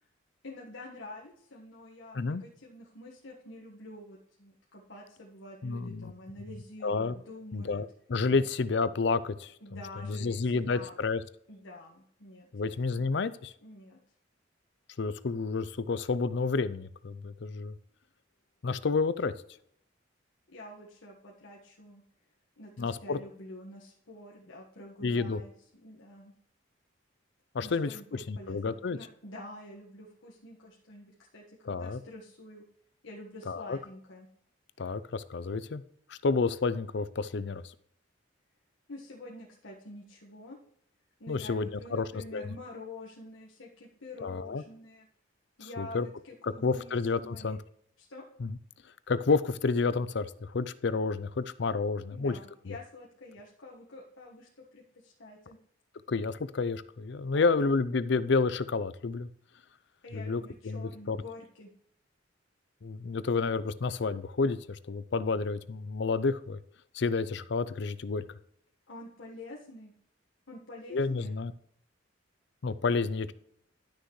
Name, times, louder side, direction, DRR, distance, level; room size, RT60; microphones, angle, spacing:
voice 1, 0.4-7.8 8.3-8.4 9.6-10.9 11.5-13.0 13.6-14.0 20.5-22.0 22.6-25.5 25.8-26.3 27.6-32.6 33.0-34.3 38.9-40.6 41.2-45.1 45.6-47.6 48.0-48.2 52.1-55.6 57.3-57.7 60.0-61.7 68.9-69.9 70.5-71.3, left 1 dB, 80° left, -3 dB, 1.5 m, -47 dB
voice 2, 5.6-6.1 6.8-7.1 7.5-9.5 10.0-11.2 12.5-13.5 15.0-17.7 18.6-19.3 22.8-23.2 25.0-25.4 27.5-27.9 28.3-29.0 31.7-32.0 33.5-33.8 34.8-35.8 36.1-37.6 41.3-42.0 42.3-42.5 44.2-44.6 45.6-46.1 46.4-47.6 48.4-48.6 49.1-52.4 52.7-52.8 56.1-59.3 60.1-61.2 62.8-66.6 66.9-68.2 70.9-71.5 72.6-73.3, left 4 dB, 60° left, 15 dB, 0.5 m, -30 dB
12.0 x 6.5 x 3.2 m, 0.68 s
head